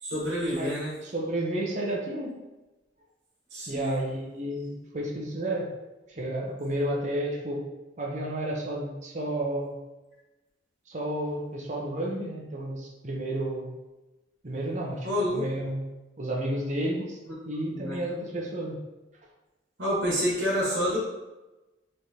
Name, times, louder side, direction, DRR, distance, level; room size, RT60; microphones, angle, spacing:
voice 1, 0.0-0.9 3.5-4.0 15.0-15.4 17.7-18.0 19.8-21.0, equal, 70° right, -6 dB, 1.4 m, -28 dB
voice 2, 0.6-2.3 3.7-5.7 6.1-7.7 8.0-9.8 10.9-13.7 14.4-15.8 16.2-17.2 17.5-18.8, right 1 dB, 40° right, -1 dB, 0.7 m, -31 dB
3.8 x 3.2 x 2.8 m, 1.1 s
head